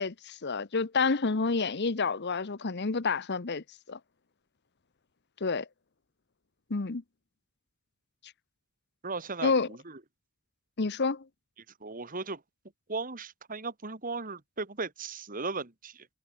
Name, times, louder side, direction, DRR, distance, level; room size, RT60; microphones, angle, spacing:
voice 1, 0.0-4.0 5.4-5.7 6.7-7.0 9.4-9.7 10.8-11.2, left 4 dB, 50° left, 0.9 m, -29 dB
voice 2, 9.0-10.0 11.8-12.4 12.9-16.1, right 3 dB, 40° right, 2.0 m, -37 dB
head